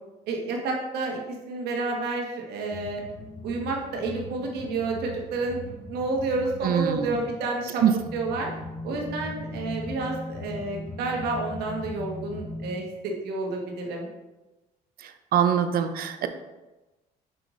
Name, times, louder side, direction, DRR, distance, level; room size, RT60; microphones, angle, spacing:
voice 1, 0.3-1.2 1.5-3.0 3.4-5.6 5.9-7.8 8.1-8.5 8.8-14.1, right 3 dB, 80° right, 0 dB, 1.5 m, -30 dB
sound 1, 2.7-12.8, left 1 dB, 50° left, 1.4 m, -39 dB
voice 2, 6.6-7.2 7.8-7.9 15.0-16.3, right 9 dB, 65° right, 9 dB, 0.6 m, -24 dB
5.8 x 4.9 x 3.8 m, 1.1 s
cardioid pair, 95°, 16 cm